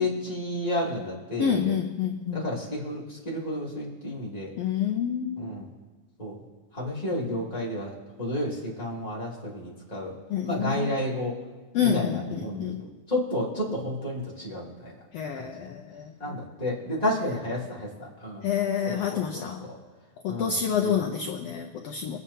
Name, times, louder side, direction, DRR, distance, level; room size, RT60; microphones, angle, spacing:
voice 1, 0.0-1.7 2.3-4.5 5.4-5.7 6.2-6.3 6.7-7.9 8.2-10.2 10.4-11.4 11.8-12.7 13.1-14.9 15.4-15.6 16.2-18.4 18.9-19.8 20.3-20.6 20.8-20.9, left 1 dB, 15° left, -6 dB, 2.5 m, -31 dB
voice 2, 1.4-2.4 4.6-5.5 10.3-10.9 11.7-12.8 15.1-16.4 18.4-19.6 20.2-22.2, left 8 dB, 75° left, 2 dB, 1.4 m, -28 dB
23.0 x 9.4 x 2.8 m, 1.3 s
omnidirectional pair, 3.6 m